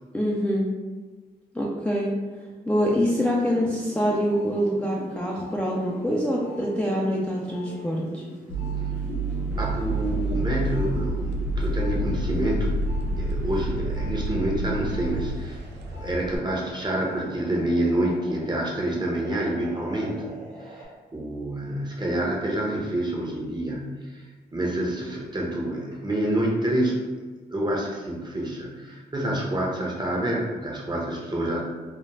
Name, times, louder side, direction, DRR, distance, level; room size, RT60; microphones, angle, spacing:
voice 1, 0.1-0.7 1.5-2.1 2.7-8.2, equal, 5° left, -4 dB, 0.4 m, -25 dB
sound 1, 2.8-14.1 14.5-20.9, equal, 45° right, 1.2 m, -42 dB
sound 2, 8.5-15.4, right 2 dB, 85° left, 0.5 m, -28 dB
sound 3, 9.5-16.4, right 1 dB, 70° right, 0.4 m, -39 dB
voice 2, 9.6-12.7 13.2-15.6 15.9-20.3 20.7-20.8 21.1-24.2 24.5-27.0 27.5-31.6, right 1 dB, 25° right, -2 dB, 0.8 m, -27 dB
2.4 x 2.1 x 3.2 m, 1.3 s
supercardioid pair, 50°, 18 cm